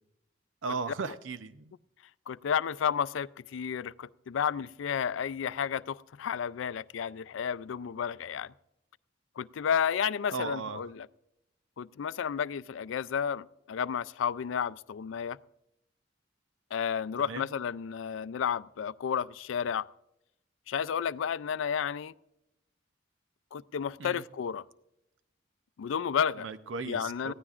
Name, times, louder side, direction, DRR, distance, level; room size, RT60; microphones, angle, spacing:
voice 1, 0.6-1.7 10.3-10.8 17.3-17.5 24.0-24.2 26.4-27.3, right 4 dB, 80° right, 0.6 m, -36 dB
voice 2, 2.3-8.5 9.4-11.1 11.8-15.4 16.7-19.9 20.7-22.1 23.5-24.6 25.8-26.5 26.9-27.3, left 7 dB, 85° left, 0.4 m, -32 dB
20.0 x 15.0 x 2.4 m
head